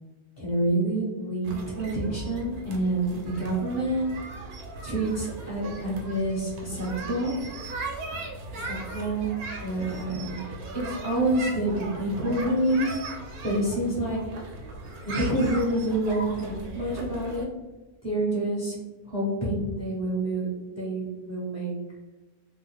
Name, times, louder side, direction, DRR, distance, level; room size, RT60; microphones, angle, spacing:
voice 1, 0.4-4.1 4.8-7.3 8.5-9.3 9.6-10.4 10.7-13.0 13.4-14.2 15.0-17.5 18.0-18.8 19.0-20.5 20.7-21.7, right 1 dB, 10° left, -5 dB, 1.1 m, -27 dB
sound 1, 1.4-17.4, right 2 dB, 85° right, 1.1 m, -38 dB
2.6 x 2.4 x 3.4 m, 1.2 s
omnidirectional pair, 1.5 m